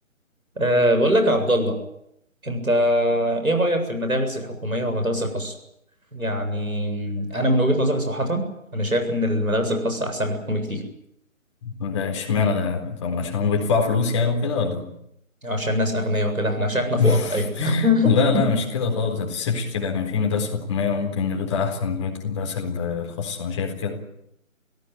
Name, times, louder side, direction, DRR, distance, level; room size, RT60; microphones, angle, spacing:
voice 1, 0.6-1.7 2.4-5.5 6.1-8.4 8.7-10.8 15.4-18.4, equal, 85° right, 5 dB, 7.8 m, -22 dB
voice 2, 11.6-14.8 17.0-24.0, left 5 dB, 20° left, 2 dB, 4.0 m, -24 dB
27.0 x 17.5 x 9.3 m, 0.79 s
figure-of-eight pair, 155°, 41 cm